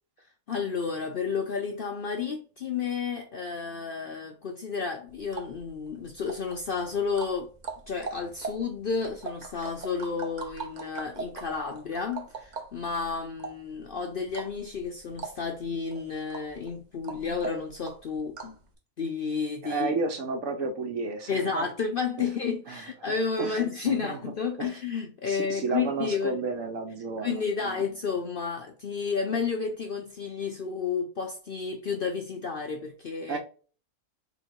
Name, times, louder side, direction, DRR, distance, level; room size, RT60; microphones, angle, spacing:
voice 1, 0.5-7.5 7.9-18.6 19.0-19.9 21.3-26.4 27.2-33.4, left 5 dB, 55° left, 0.6 m, -31 dB
sound 1, 5.1-18.7, right 4 dB, 45° right, 0.6 m, -42 dB
voice 2, 19.6-21.7 22.2-22.3 22.7-22.8 23.4-23.6 23.9-24.2 24.6-24.7 25.3-27.8 33.3-33.4, right 4 dB, 70° right, 1.2 m, -32 dB
3.8 x 2.9 x 4.5 m
omnidirectional pair, 1.5 m